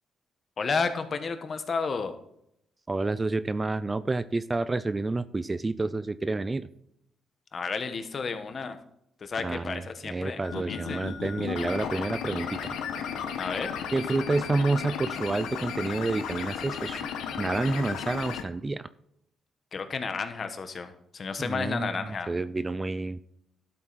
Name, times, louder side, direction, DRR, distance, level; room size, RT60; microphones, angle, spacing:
voice 1, 0.6-2.1 7.5-8.8 9.2-11.0 13.4-13.7 19.7-22.3, left 5 dB, 45° left, 9 dB, 1.3 m, -32 dB
voice 2, 2.9-6.7 9.4-12.8 13.9-17.1 17.4-18.9 21.4-23.2, right 3 dB, 20° right, 15 dB, 0.4 m, -29 dB
sound 1, 10.4-18.4, left 7 dB, 85° left, 1.3 m, -34 dB
12.0 x 7.6 x 4.2 m, 0.76 s
cardioid pair, 90°, 0 cm